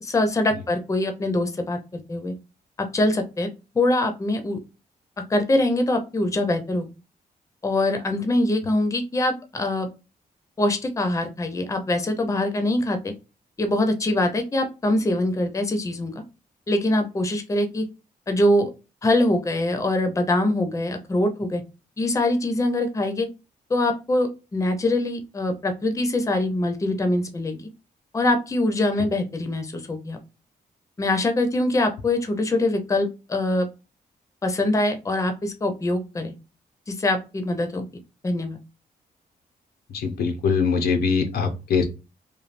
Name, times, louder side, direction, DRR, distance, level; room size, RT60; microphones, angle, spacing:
voice 1, 0.0-2.3 2.9-3.5 3.7-4.6 5.3-6.9 7.6-9.9 10.6-13.1 13.6-16.1 16.7-17.9 18.3-18.7 19.0-21.6 22.0-23.3 23.7-27.7 28.1-30.2 31.0-33.7 34.4-36.3 36.9-37.9 38.2-38.6, left 1 dB, 20° left, 6 dB, 0.5 m, -23 dB
voice 2, 39.9-41.8, left 5 dB, 90° left, 5 dB, 0.7 m, -22 dB
3.2 x 2.2 x 2.5 m, 0.28 s
cardioid pair, 115°, 16 cm